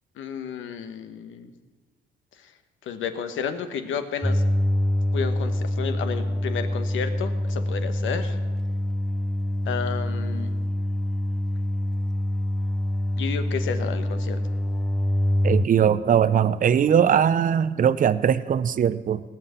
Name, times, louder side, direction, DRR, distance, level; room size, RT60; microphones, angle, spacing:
voice 1, 0.2-1.5 2.4-2.5 2.8-4.4 5.1-8.4 9.6-10.5 13.2-14.4, left 7 dB, 80° left, 9 dB, 1.2 m, -32 dB
sound 1, 4.2-15.7, left 1 dB, ahead, 0.3 m, -25 dB
voice 2, 15.4-19.2, right 8 dB, 45° right, 15 dB, 0.6 m, -20 dB
17.5 x 5.8 x 8.2 m, 1.3 s
cardioid pair, 90°, 20 cm